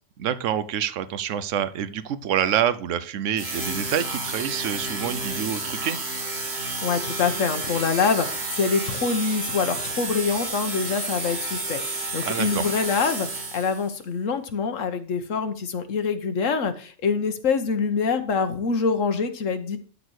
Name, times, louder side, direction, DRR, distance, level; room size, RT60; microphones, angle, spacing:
voice 1, 0.2-6.0 12.2-12.6, right 9 dB, 80° right, 13 dB, 1.1 m, -27 dB
sound 1, 3.4-13.9, right 2 dB, 55° right, 2.0 m, -31 dB
voice 2, 6.8-19.8, left 5 dB, 85° left, 9 dB, 1.4 m, -25 dB
12.0 x 4.2 x 6.3 m, 0.40 s
omnidirectional pair, 1.3 m